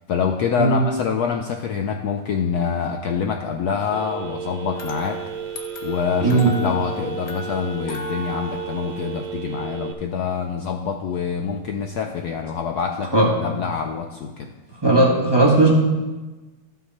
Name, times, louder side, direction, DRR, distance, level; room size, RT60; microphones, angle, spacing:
voice 1, 0.1-5.2 5.8-14.5, left 6 dB, 85° left, 4 dB, 0.8 m, -26 dB
Telephone, 3.9-9.9, right 8 dB, 65° right, 1.2 m, -33 dB
sound 1, 4.7-9.8, left 2 dB, 55° left, 1.2 m, -37 dB
voice 2, 6.2-6.6 13.1-13.3 14.8-15.7, right 2 dB, 15° right, -4 dB, 1.3 m, -16 dB
13.0 x 5.9 x 4.2 m, 1.2 s
omnidirectional pair, 2.3 m